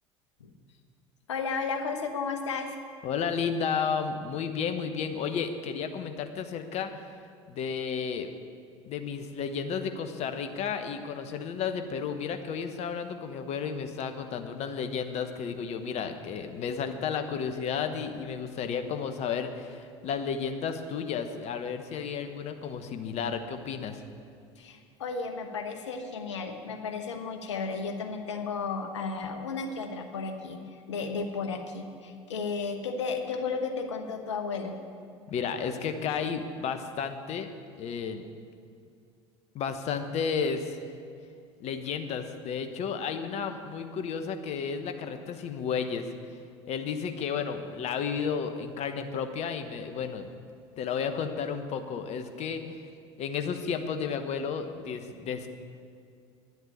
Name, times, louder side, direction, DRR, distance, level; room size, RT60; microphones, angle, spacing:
voice 1, 1.3-2.8 24.6-30.6 30.9-34.8, left 4 dB, 80° left, 4 dB, 1.2 m, -33 dB
voice 2, 3.0-7.1 7.5-8.3 8.9-24.0 35.3-37.5 37.8-38.2 39.5-40.8 41.6-46.1 46.7-50.3 50.8-52.8 53.2-55.5, left 6 dB, 45° left, 8 dB, 1.1 m, -32 dB
11.0 x 7.9 x 8.7 m, 2.3 s
figure-of-eight pair, 70°, 15 cm